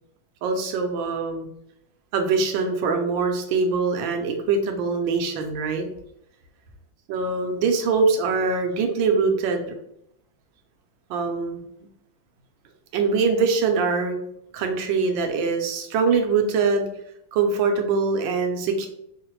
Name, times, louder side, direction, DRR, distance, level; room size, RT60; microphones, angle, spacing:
voice 1, 0.4-1.5 2.1-5.9 7.1-9.7 11.1-11.6 12.9-14.2 14.5-16.9 17.3-18.9, right 4 dB, 75° right, 5 dB, 1.3 m, -23 dB
4.8 x 2.1 x 3.0 m, 0.76 s
omnidirectional pair, 2.2 m